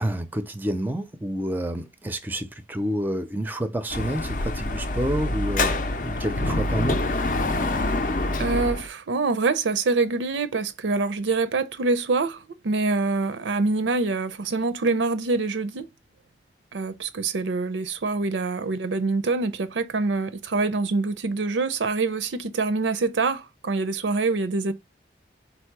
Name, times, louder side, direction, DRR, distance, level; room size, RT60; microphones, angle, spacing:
voice 1, 0.0-5.8 6.0-7.0, right 1 dB, 10° right, 0.4 m, -29 dB
Dog / Motorcycle, 3.9-8.9, left 2 dB, 45° left, 0.5 m, -26 dB
voice 2, 8.4-15.9 16.7-24.7, right 3 dB, 85° right, 0.5 m, -25 dB
4.1 x 2.7 x 4.6 m
head